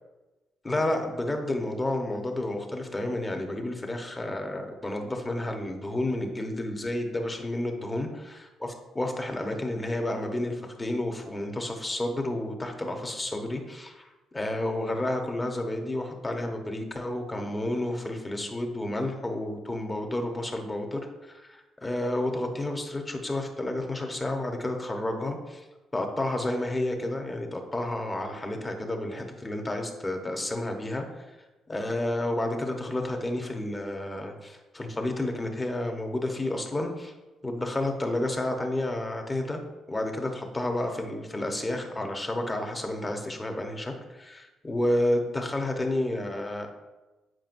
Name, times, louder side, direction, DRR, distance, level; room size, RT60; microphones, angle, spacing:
voice 1, 0.6-8.1 8.9-25.6 25.9-31.4 31.7-37.1 37.4-39.6 39.9-46.7, left 1 dB, 20° left, 3 dB, 1.0 m, -30 dB
7.5 x 5.0 x 2.6 m, 1.1 s
cardioid pair, 90°, 0 cm